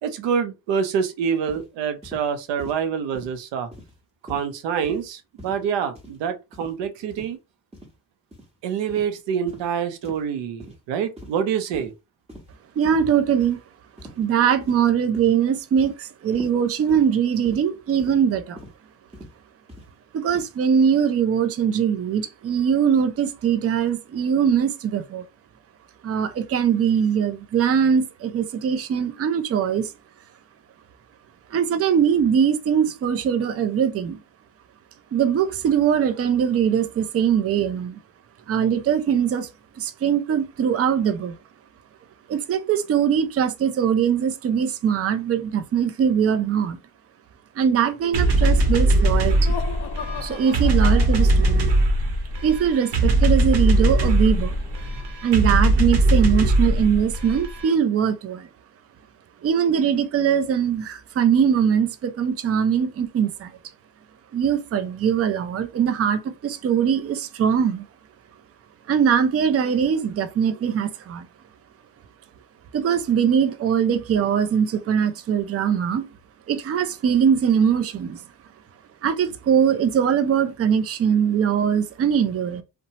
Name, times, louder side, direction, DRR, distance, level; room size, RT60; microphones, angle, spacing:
voice 1, 0.0-3.7 4.3-7.4 8.6-11.9, right 7 dB, 90° right, 0.6 m, -26 dB
sound 1, 1.5-1.7 2.0-2.3 2.6-2.8 3.1-3.4 3.7-4.0 4.3-4.5 4.8-5.1 5.4-5.6 6.0-6.2 6.5-6.7 7.1-7.3 7.7-7.9 8.3-8.5 8.9-9.1 9.5-9.7 10.0-10.2 10.6-10.8 11.2-11.5 11.7-11.9 12.3-12.6 12.8-13.1 13.4-13.6 14.0-14.3 14.6-14.9 15.1-15.4 15.8-16.0 16.3-16.6 16.9-17.1 17.4-17.7 18.0-18.2 18.6-18.7 19.1-19.3 19.7-19.9 20.3-20.5, equal, 15° right, 1.2 m, -42 dB
voice 2, 12.8-13.6 14.2-18.6 20.1-25.3 26.0-29.9 31.5-34.2 35.1-38.0 38.5-39.5 39.8-41.4 42.3-46.8 47.6-49.5 50.2-51.7 52.4-54.5 55.2-58.5 59.4-63.5 64.3-67.8 68.9-71.3 72.7-76.1 76.5-78.2 79.0-82.6, right 8 dB, 35° right, 0.5 m, -21 dB
Laughter, 48.0-51.7, left 8 dB, 80° left, 0.6 m, -37 dB
sound 2, 48.1-57.7, right 1 dB, 70° right, 0.9 m, -20 dB
2.7 x 2.2 x 2.8 m
cardioid pair, 80°, 42 cm